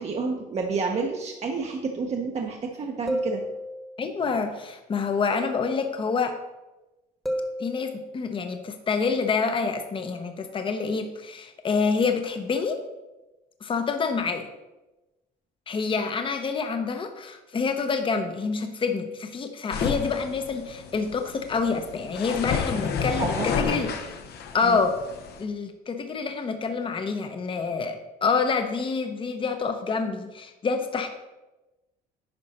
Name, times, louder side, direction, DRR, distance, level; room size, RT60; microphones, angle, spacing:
voice 1, 0.0-3.4 23.2-23.9 24.6-24.8, right 4 dB, 40° right, 1 dB, 0.9 m, -30 dB
sound 1, 3.1-4.2 7.3-8.4, equal, ahead, 1.2 m, -32 dB
voice 2, 4.0-6.4 7.6-12.8 13.6-14.5 15.7-24.1 24.5-25.0 25.4-31.1, left 5 dB, 30° left, 7 dB, 0.8 m, -27 dB
sound 2, 19.7-25.4, left 6 dB, 70° left, 1.0 m, -31 dB
9.7 x 5.3 x 4.3 m, 1.1 s
cardioid pair, 110°, 17 cm